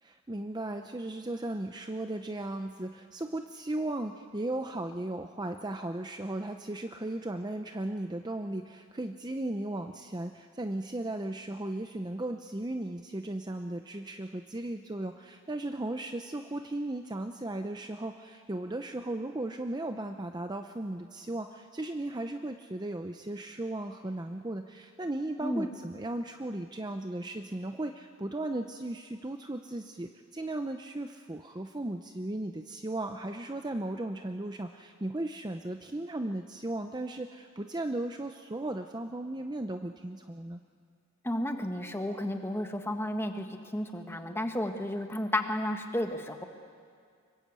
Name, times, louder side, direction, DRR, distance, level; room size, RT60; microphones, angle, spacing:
voice 1, 0.0-40.6, right 1 dB, 20° right, 6 dB, 0.6 m, -36 dB
voice 2, 41.2-43.5 43.7-46.4, left 1 dB, 10° left, 5 dB, 1.5 m, -32 dB
25.0 x 22.5 x 8.3 m, 2.1 s
head